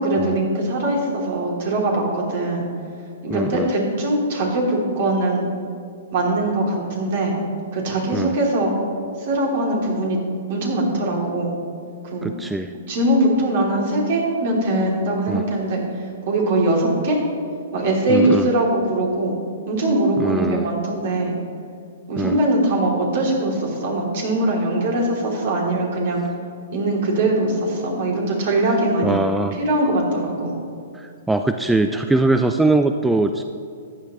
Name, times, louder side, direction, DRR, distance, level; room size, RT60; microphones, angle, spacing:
voice 1, 0.0-2.7 3.2-5.4 6.1-7.4 7.7-8.7 9.2-10.2 10.5-11.5 12.1-12.3 12.9-15.8 16.3-17.2 17.7-19.3 19.7-21.3 22.1-26.2 26.7-29.2 29.6-30.5, right 1 dB, 55° right, -2 dB, 2.9 m, -21 dB
voice 2, 3.3-3.7 8.1-8.3 12.2-12.7 15.3-15.4 18.1-18.5 20.2-20.7 22.2-22.4 29.0-29.6 30.9-33.4, right 2 dB, 5° right, 7 dB, 0.3 m, -21 dB
14.5 x 9.7 x 3.1 m, 2.4 s
hypercardioid pair, 125°, 0 cm